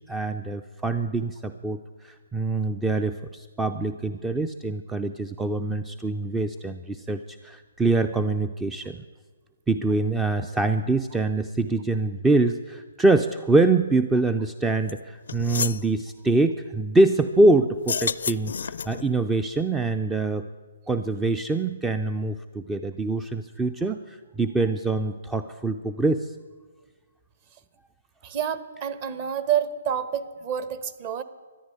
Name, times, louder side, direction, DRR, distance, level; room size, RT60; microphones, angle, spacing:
voice 1, 0.0-9.0 9.7-20.5 20.9-26.3, right 2 dB, 10° right, 10 dB, 0.4 m, -24 dB
sound 1, 14.9-15.0 15.3-15.8 17.8-19.1, left 6 dB, 70° left, 0.5 m, -29 dB
voice 2, 28.2-31.2, right 9 dB, 35° right, 13 dB, 1.0 m, -28 dB
14.0 x 10.5 x 9.7 m, 1.4 s
hypercardioid pair, 155°, 0 cm